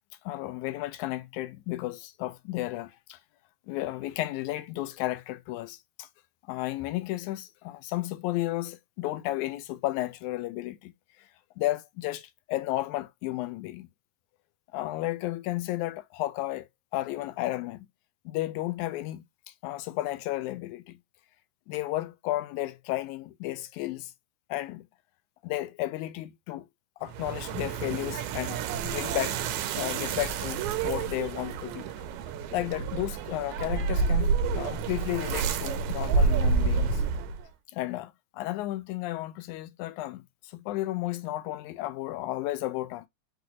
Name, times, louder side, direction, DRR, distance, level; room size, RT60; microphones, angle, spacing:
voice 1, 0.3-3.2 3.7-6.1 6.5-10.9 11.6-13.9 14.7-17.9 18.3-19.2 19.6-21.0 21.7-24.1 24.5-24.9 25.4-26.7 27.0-29.5 29.7-31.9 32.5-37.0 37.7-43.1, left 16 dB, 85° left, 2.0 m, -33 dB
sound 1, 27.1-37.5, right 5 dB, 85° right, 2.0 m, -29 dB
5.8 x 2.7 x 2.9 m
omnidirectional pair, 3.4 m